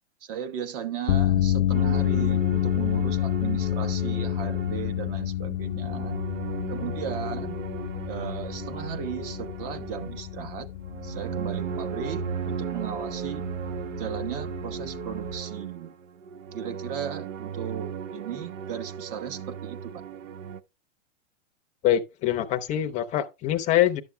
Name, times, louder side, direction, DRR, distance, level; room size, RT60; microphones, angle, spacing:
voice 1, 0.2-6.2 6.7-7.6 8.1-10.6 11.0-13.4 14.0-15.9 16.5-19.9, right 8 dB, 45° right, 1.2 m, -36 dB
sound 1, 1.1-15.4, left 12 dB, 85° left, 0.6 m, -29 dB
sound 2, 1.7-5.3 5.6-20.6, right 7 dB, 90° right, 0.7 m, -36 dB
voice 2, 21.8-24.0, left 12 dB, 20° left, 0.6 m, -24 dB
11.5 x 6.9 x 2.2 m
hypercardioid pair, 140°, 37 cm